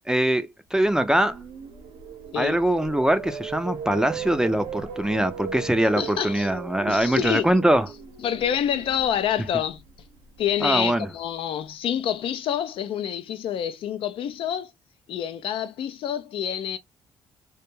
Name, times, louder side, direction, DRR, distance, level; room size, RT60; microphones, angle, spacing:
voice 1, 0.0-1.4 2.3-7.9 10.6-11.1, right 1 dB, 5° right, 0.4 m, -22 dB
sound 1, 0.9-11.0, right 6 dB, 85° right, 0.8 m, -38 dB
voice 2, 6.0-6.5 6.9-7.5 8.2-9.8 10.4-14.7 15.1-16.8, left 9 dB, 65° left, 0.4 m, -27 dB
2.2 x 2.1 x 3.0 m
supercardioid pair, 75°, 10 cm